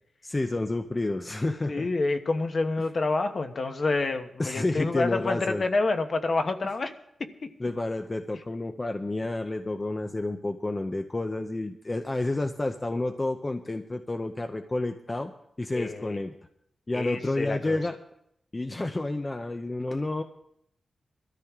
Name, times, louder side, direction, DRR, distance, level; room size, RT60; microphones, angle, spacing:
voice 1, 0.2-1.9 4.4-5.6 7.6-15.3 15.6-16.3 16.9-18.0 18.5-20.2, left 2 dB, 20° left, 6 dB, 0.6 m, -30 dB
voice 2, 1.7-6.9 7.2-7.5 15.7-16.2 16.9-17.8, left 3 dB, 45° left, 7 dB, 1.1 m, -28 dB
21.5 x 13.5 x 3.6 m, 0.74 s
wide cardioid pair, 125°, 0 cm